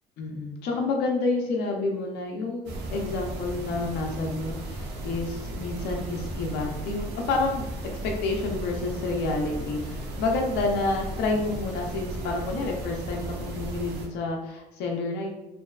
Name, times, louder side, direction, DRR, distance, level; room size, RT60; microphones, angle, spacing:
voice 1, 0.2-7.7 8.0-15.3, left 3 dB, 80° left, 0 dB, 0.5 m, -29 dB
sound 1, 2.7-14.1, right 1 dB, 80° right, 0.5 m, -35 dB
2.6 x 2.2 x 2.3 m, 0.96 s
cardioid pair, 110°, 17 cm